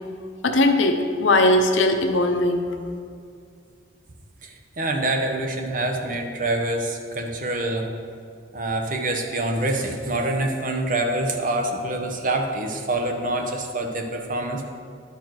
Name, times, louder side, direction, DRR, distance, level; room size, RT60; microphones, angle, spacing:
voice 1, 0.4-2.6, left 2 dB, 85° left, 5 dB, 0.8 m, -19 dB
voice 2, 4.4-7.9 8.5-14.7, right 2 dB, 45° right, 3 dB, 0.9 m, -26 dB
11.0 x 4.6 x 4.6 m, 2.3 s
head